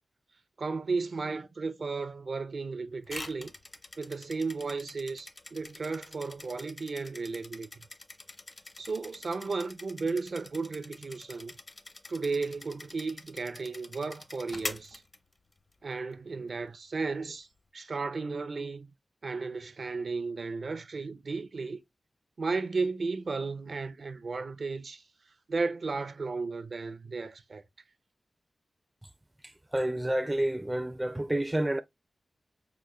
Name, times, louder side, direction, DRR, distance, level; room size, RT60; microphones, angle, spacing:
voice 1, 0.6-3.5 4.0-7.7 8.8-11.5 12.1-15.0 15.8-17.5 17.7-18.9 19.2-21.8 22.4-25.0 25.5-27.6, right 4 dB, 65° right, 0.5 m, -34 dB
sound 1, 3.1-15.7, left 2 dB, 40° left, 0.6 m, -45 dB
voice 2, 29.7-31.8, right 1 dB, 15° right, 0.4 m, -29 dB
4.8 x 2.2 x 3.1 m
cardioid pair, 60°, 0 cm